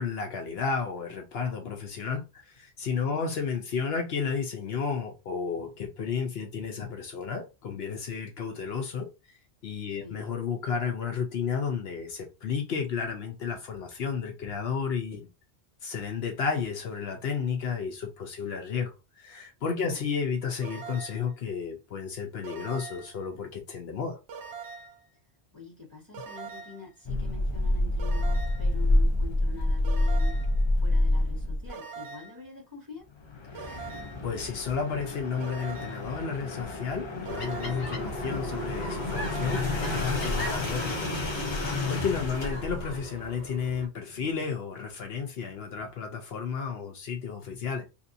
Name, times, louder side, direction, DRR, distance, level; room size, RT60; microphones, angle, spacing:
voice 1, 0.0-9.1 9.6-15.3 15.8-24.2 33.5-47.8, left 6 dB, 70° left, 0.9 m, -32 dB
voice 2, 9.9-10.2 19.8-20.0 25.5-30.4 30.7-33.1 42.2-42.5, left 4 dB, 20° right, 1.9 m, -45 dB
sound 1, 20.6-21.3 22.4-23.2 24.3-25.0 26.1-26.9 28.0-28.7 29.8-30.6 31.7-32.4 33.6-34.3 35.4-36.1 37.3-38.0 39.1-39.8, right 5 dB, 80° right, 0.9 m, -42 dB
sound 2, 27.0-31.7 33.1-43.0, left 1 dB, 30° left, 0.6 m, -29 dB
sound 3, 37.3-43.9, right 1 dB, 50° left, 1.2 m, -37 dB
3.2 x 2.7 x 2.6 m
omnidirectional pair, 1.1 m